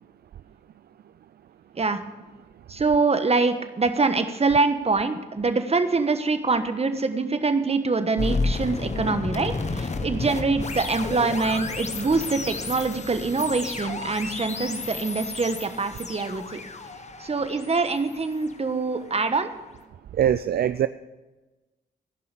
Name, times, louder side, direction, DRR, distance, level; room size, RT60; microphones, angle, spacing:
voice 1, 2.7-16.6 17.2-19.5, right 3 dB, 35° right, 9 dB, 1.2 m, -24 dB
sound 1, 8.2-19.2, left 3 dB, 40° left, 1.2 m, -32 dB
voice 2, 20.2-20.9, right 10 dB, 60° right, 13 dB, 0.4 m, -22 dB
15.5 x 5.6 x 8.2 m, 1.1 s
cardioid pair, 55°, 18 cm